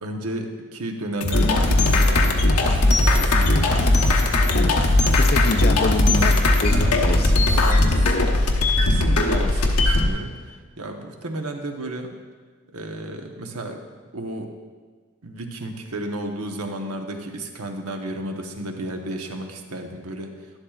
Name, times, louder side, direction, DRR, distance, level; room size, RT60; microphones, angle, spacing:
voice 1, 0.0-3.8 4.8-5.2 6.7-8.0 8.8-12.2 12.7-13.8 14.1-14.5 15.2-20.3, right 1 dB, 85° right, 3 dB, 1.0 m, -33 dB
sound 1, 1.2-10.1, left 2 dB, 90° left, 1.0 m, -18 dB
voice 2, 3.8-4.8 5.1-7.4, left 3 dB, 45° left, 8 dB, 0.5 m, -28 dB
12.0 x 11.5 x 2.4 m, 1.5 s
head